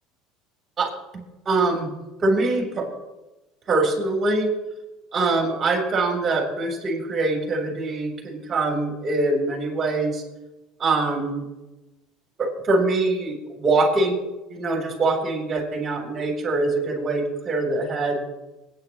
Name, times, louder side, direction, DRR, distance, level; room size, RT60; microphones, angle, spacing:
voice 1, 0.8-1.9 2.2-2.9 3.7-4.5 5.1-10.2 10.8-11.4 12.4-14.2 14.5-18.2, right 2 dB, 25° right, 2 dB, 3.3 m, -23 dB
27.0 x 9.2 x 3.0 m, 1.0 s
cardioid pair, 145°, 0 cm